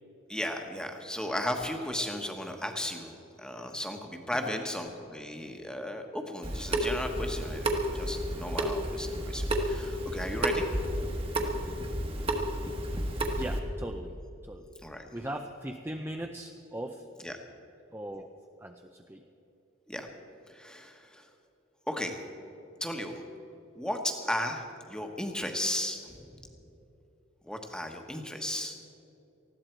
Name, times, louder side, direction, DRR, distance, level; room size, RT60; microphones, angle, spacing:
voice 1, 0.3-10.6 14.8-15.0 17.2-17.4 19.9-20.1 20.5-21.3 21.9-22.1 22.8-23.2 23.7-26.3 27.4-28.7, left 1 dB, 5° left, 3 dB, 1.2 m, -35 dB
Water tap faucet / Sink (filling or washing) / Drip, 6.4-13.6, right 1 dB, 30° right, 1.3 m, -31 dB
voice 2, 13.3-14.1 14.4-14.6 15.1-17.1 17.9-18.3 18.6-19.2, right 1 dB, 10° right, 3 dB, 0.5 m, -39 dB
19.5 x 15.0 x 4.5 m, 2.9 s
head